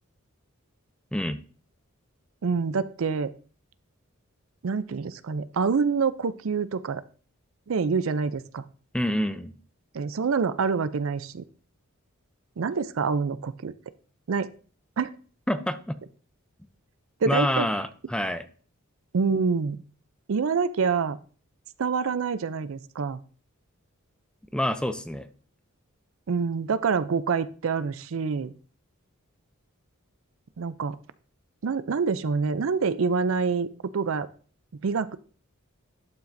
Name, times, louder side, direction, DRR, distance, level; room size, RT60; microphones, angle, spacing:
voice 1, 2.4-3.3 4.6-7.0 7.7-8.6 9.9-11.4 12.6-13.7 14.3-14.5 15.0-15.1 17.2-17.7 19.1-19.8 20.3-21.2 21.8-23.2 26.3-28.5 30.6-31.0 31.6-33.7 33.9-34.3 34.8-35.2, right 5 dB, 70° right, 15 dB, 0.5 m, -26 dB
voice 2, 8.9-9.5 15.5-15.9 17.3-18.4 24.5-25.3, left 1 dB, 5° left, 10 dB, 0.5 m, -27 dB
11.5 x 5.7 x 2.6 m, 0.40 s
head